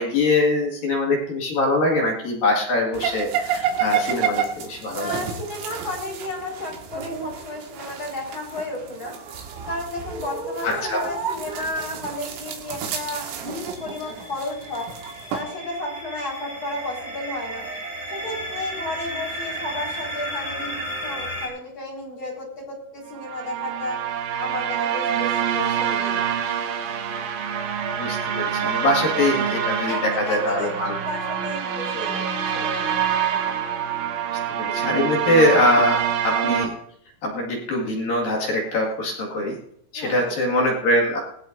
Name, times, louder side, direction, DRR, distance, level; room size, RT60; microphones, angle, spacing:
voice 1, 0.0-5.2 10.6-11.0 28.0-31.0 34.6-36.7 37.2-39.5 39.9-41.2, left 1 dB, 55° left, -2 dB, 3.2 m, -23 dB
sound 1, 2.9-15.4, right 7 dB, 90° right, 4.4 m, -30 dB
voice 2, 4.9-9.2 9.7-14.9 15.3-17.7 18.1-24.0 24.4-26.2 29.9-32.2 32.5-33.0 33.2-33.7 39.9-40.4, left 1 dB, 25° left, -3 dB, 4.9 m, -33 dB
sound 2, 13.3-21.5, right 1 dB, 40° right, 4.7 m, -34 dB
sound 3, 23.2-36.7, right 8 dB, 70° right, 3.8 m, -26 dB
19.5 x 17.5 x 2.7 m, 0.74 s
omnidirectional pair, 5.8 m